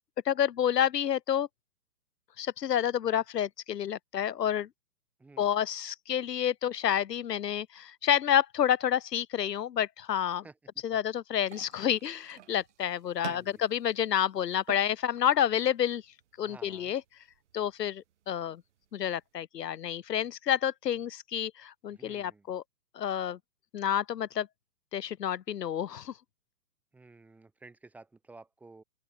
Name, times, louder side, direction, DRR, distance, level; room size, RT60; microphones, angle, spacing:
voice 1, 0.2-1.5 2.4-4.7 5.4-10.4 10.8-16.0 16.4-17.0 17.5-18.6 18.9-22.6 22.9-23.4 23.7-24.5 24.9-26.1, left 10 dB, 80° left, 1.2 m, -29 dB
voice 2, 5.2-5.5 10.4-10.8 13.2-13.6 16.4-16.9 21.9-22.5 26.9-28.8, right 3 dB, 5° right, 3.3 m, -53 dB
sound 1, 11.4-19.4, right 10 dB, 45° right, 3.2 m, -51 dB
open air
hypercardioid pair, 175°, 48 cm